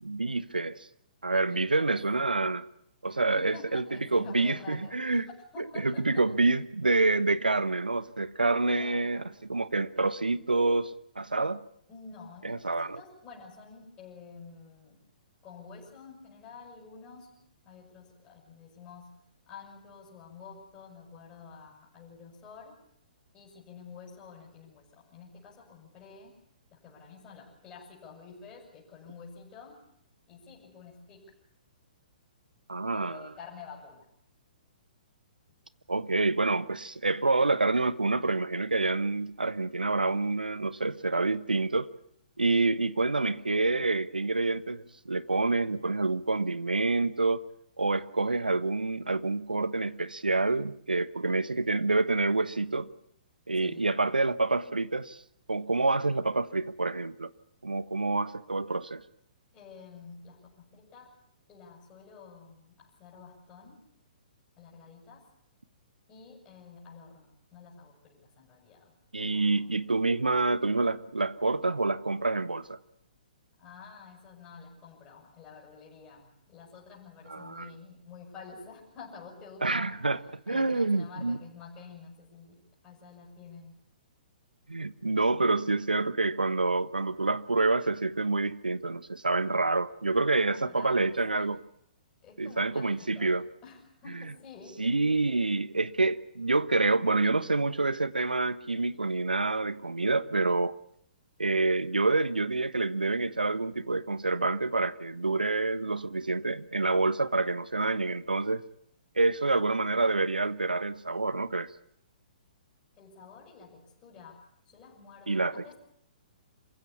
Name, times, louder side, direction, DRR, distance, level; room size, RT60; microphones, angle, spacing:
voice 1, 0.0-0.9 1.2-2.7 3.0-3.8 4.1-5.3 5.6-9.2 9.5-11.6 12.4-13.0 32.7-33.3 35.9-41.9 42.4-47.4 47.8-52.9 53.5-55.2 55.5-57.3 57.6-59.0 69.1-72.8 77.3-77.7 79.6-80.2 80.5-81.4 84.7-91.6 92.4-93.4 94.8-100.7 101.4-108.6 109.2-111.7 115.3-115.7, right 3 dB, 80° right, 1.1 m, -27 dB
voice 2, 1.5-1.9 3.1-5.2 5.5-6.4 8.7-9.4 11.9-15.1 15.4-22.8 23.3-26.4 26.7-29.8 30.3-31.3 32.8-34.1 53.6-53.8 59.5-61.2 61.5-63.8 64.6-65.3 66.1-68.9 69.2-69.9 73.6-80.0 80.5-83.8 90.3-91.6 92.2-94.8 113.0-115.7, left 5 dB, 20° left, 7.3 m, -49 dB
27.0 x 15.5 x 8.4 m
figure-of-eight pair, 120°, 5 cm